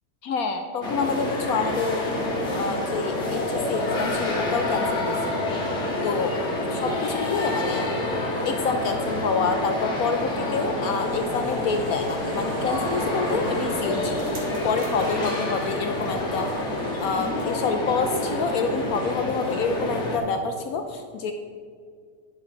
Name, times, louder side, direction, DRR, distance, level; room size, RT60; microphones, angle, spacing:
voice 1, 0.2-2.1 2.5-5.2 6.0-6.4 6.7-7.9 8.4-14.2 14.6-16.5 17.0-21.3, left 5 dB, 80° left, 6 dB, 0.8 m, -27 dB
sound 1, 0.8-20.2, left 1 dB, 40° left, 1.4 m, -28 dB
sound 2, 10.9-19.1, right 2 dB, 65° right, 2.3 m, -40 dB
10.0 x 5.5 x 5.8 m, 2.1 s
omnidirectional pair, 2.1 m